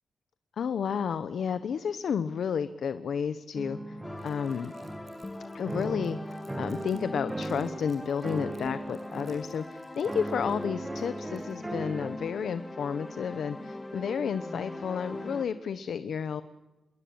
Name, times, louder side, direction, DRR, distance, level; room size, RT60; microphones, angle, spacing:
voice 1, 0.6-4.7 5.5-16.4, left 7 dB, 70° left, 12 dB, 1.1 m, -32 dB
sound 1, 3.5-5.3 5.7-7.9 8.2-9.5 10.1-12.1, right 1 dB, 15° right, 2.6 m, -37 dB
sound 2, 4.0-15.5, left 1 dB, 15° left, 1.8 m, -41 dB
Crumpling crinkling, 4.2-7.0 7.3-11.7, right 4 dB, 40° right, 7.6 m, -63 dB
27.0 x 22.0 x 8.9 m, 1.1 s
wide cardioid pair, 170°, 0 cm